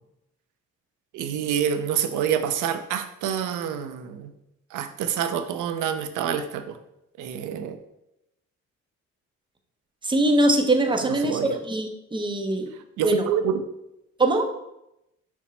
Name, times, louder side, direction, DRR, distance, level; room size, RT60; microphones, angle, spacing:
voice 1, 1.1-4.3 4.7-6.8 7.2-7.8 11.2-11.5 13.0-13.6, right 8 dB, 85° right, 9 dB, 0.5 m, -27 dB
voice 2, 10.0-12.7 13.0-13.2 14.2-14.5, right 1 dB, 15° right, 4 dB, 0.7 m, -22 dB
5.9 x 2.1 x 4.2 m, 0.85 s
cardioid pair, 90°, 30 cm